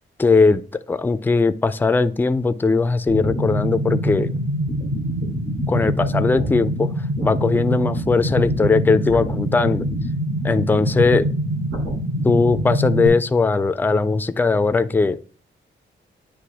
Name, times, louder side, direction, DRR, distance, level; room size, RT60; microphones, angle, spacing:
voice 1, 0.2-0.6 0.9-4.3 5.7-6.9 7.2-9.9 10.4-11.3 12.2-15.2, left 4 dB, 10° left, 12 dB, 0.3 m, -19 dB
sound 1, 3.1-13.1, equal, 70° right, 2.9 m, -24 dB
9.4 x 3.3 x 3.4 m, 0.40 s
wide cardioid pair, 140°, 20 cm